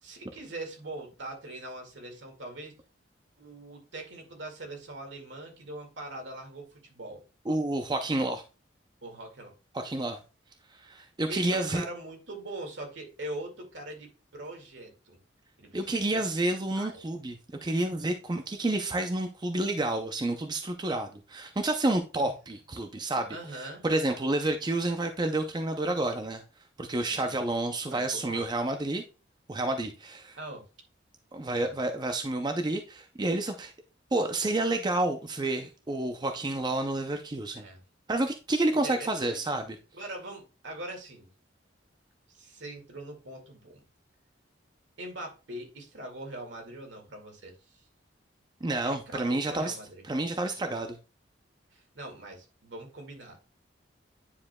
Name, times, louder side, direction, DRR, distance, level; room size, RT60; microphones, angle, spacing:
voice 1, 0.0-2.7 3.4-7.2 9.0-9.5 11.3-15.2 15.6-16.2 16.7-17.0 22.2-22.3 23.3-23.9 27.0-27.4 27.9-28.4 30.4-30.6 31.5-31.8 37.5-37.8 38.7-39.4 39.9-41.3 42.3-43.8 45.0-47.8 48.8-50.0 51.7-53.4, right 1 dB, 70° right, 2.0 m, -42 dB
voice 2, 7.5-8.4 9.7-10.2 10.7-11.8 15.7-26.4 26.8-29.0 29.5-30.4 31.3-33.7 34.1-37.6 38.1-39.8 48.6-49.7 50.0-51.0, right 2 dB, 25° right, 0.5 m, -29 dB
9.6 x 4.9 x 2.2 m
head